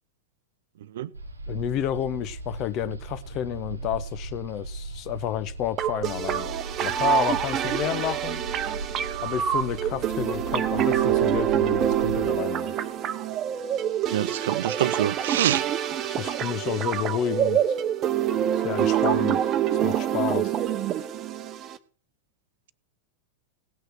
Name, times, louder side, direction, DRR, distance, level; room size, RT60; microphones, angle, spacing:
sound 1, 1.1-12.3, right 2 dB, 80° right, 1.2 m, -37 dB
voice 1, 1.5-6.5 6.8-8.4 9.2-12.8 16.1-17.7 18.5-20.5, left 11 dB, 40° left, 0.9 m, -30 dB
sound 2, 5.8-21.8, right 10 dB, 30° right, 0.9 m, -26 dB
voice 2, 14.1-15.7, right 12 dB, 60° right, 0.6 m, -25 dB
17.0 x 6.5 x 6.1 m
figure-of-eight pair, 90°, 0 cm